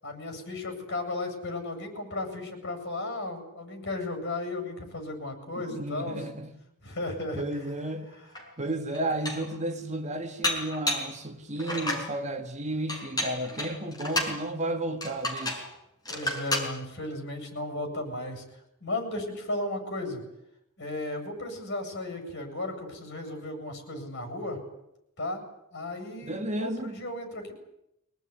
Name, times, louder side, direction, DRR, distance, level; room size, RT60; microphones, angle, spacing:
voice 1, 0.0-6.2 6.8-7.5 16.1-18.4 18.8-20.2 20.8-24.6 25.2-25.4 25.7-27.5, left 2 dB, 55° left, 7.8 m, -35 dB
voice 2, 5.6-6.5 7.4-8.1 8.6-15.7 26.2-26.9, right 1 dB, 35° right, 2.1 m, -33 dB
Dishes pots and pans, 8.4-8.5 8.9-9.6 10.4-11.1 11.6-12.1 12.9-14.4 15.0-15.7 16.1-16.7, left 1 dB, 20° left, 5.6 m, -31 dB
24.0 x 18.5 x 9.9 m
head